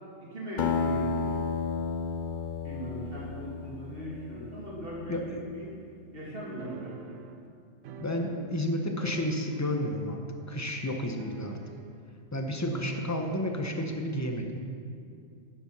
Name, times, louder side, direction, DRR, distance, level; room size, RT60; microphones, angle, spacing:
voice 1, 0.2-1.2 2.6-5.7 6.1-7.2 12.7-12.8, right 1 dB, 45° right, -6 dB, 2.7 m, -39 dB
Acoustic guitar, 0.6-5.4, left 5 dB, 60° left, 0.5 m, -32 dB
voice 2, 5.1-5.4 8.0-10.2 10.5-11.6 12.3-14.6, left 1 dB, 15° left, 3 dB, 0.6 m, -31 dB
sound 1, 6.6-8.7 9.0-10.0 10.3-10.4 11.2-12.0, right 7 dB, 75° right, 1.0 m, -46 dB
9.6 x 7.0 x 5.9 m, 2.4 s
omnidirectional pair, 1.3 m